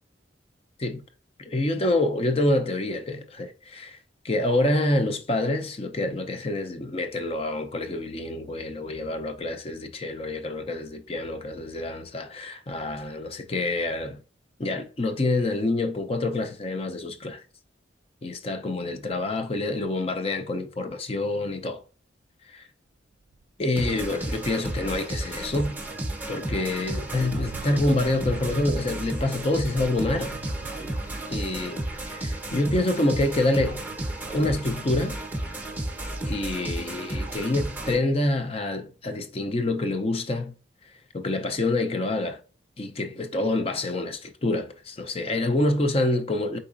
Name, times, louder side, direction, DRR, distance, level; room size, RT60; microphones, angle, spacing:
voice 1, 1.4-4.0 4.2-14.2 14.6-17.4 18.2-21.8 22.5-22.7 23.6-25.8 26.3-30.3 31.3-31.8 32.1-33.8 34.3-35.2 36.2-40.5 41.1-42.4 42.8-46.6, left 2 dB, 35° left, 0.5 m, -27 dB
sound 1, 23.3-23.6 24.1-32.9 33.2-36.1, right 3 dB, 45° right, 0.3 m, -43 dB
sound 2, 23.8-38.0, right 1 dB, 10° right, 0.7 m, -32 dB
4.7 x 3.9 x 2.5 m
head